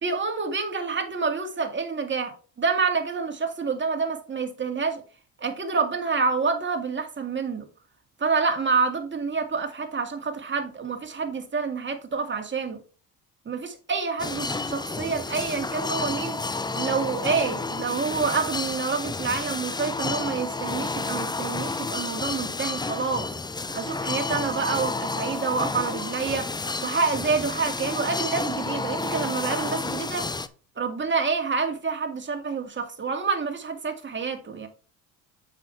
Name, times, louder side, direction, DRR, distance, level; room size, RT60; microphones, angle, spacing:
voice 1, 0.0-5.0 5.4-7.6 8.2-12.8 13.5-16.4 16.8-23.3 23.7-26.5 26.8-30.3 30.8-34.7, right 4 dB, 25° right, 2.2 m, -27 dB
sound 1, 14.2-30.5, left 3 dB, 10° left, 0.6 m, -31 dB
7.3 x 6.4 x 3.3 m
supercardioid pair, 75°, 42 cm